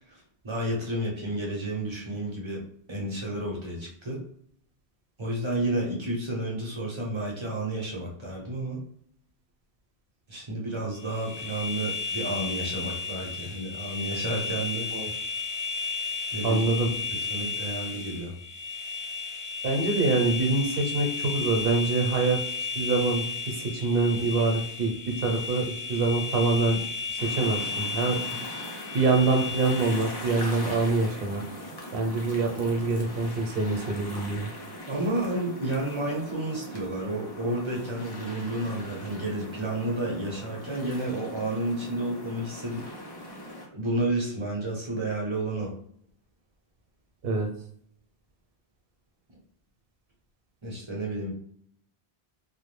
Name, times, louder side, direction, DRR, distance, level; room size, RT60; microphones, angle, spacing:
voice 1, 0.1-2.6 2.9-4.2 5.2-8.8 10.3-14.9 16.3-16.6 17.3-18.3 34.9-43.2 43.7-45.7 50.6-51.3, right 1 dB, 35° right, -3 dB, 0.6 m, -31 dB
sound 1, 11.0-30.2, left 4 dB, 55° left, 0.8 m, -34 dB
voice 2, 16.4-16.9 19.6-24.9 25.2-26.8 27.1-28.2 28.9-31.4 31.9-34.5 47.2-47.5, right 3 dB, 65° right, 2 dB, 0.8 m, -25 dB
sound 2, 27.2-43.7, equal, 35° left, 0.4 m, -41 dB
2.3 x 2.1 x 3.1 m, 0.64 s
omnidirectional pair, 1.1 m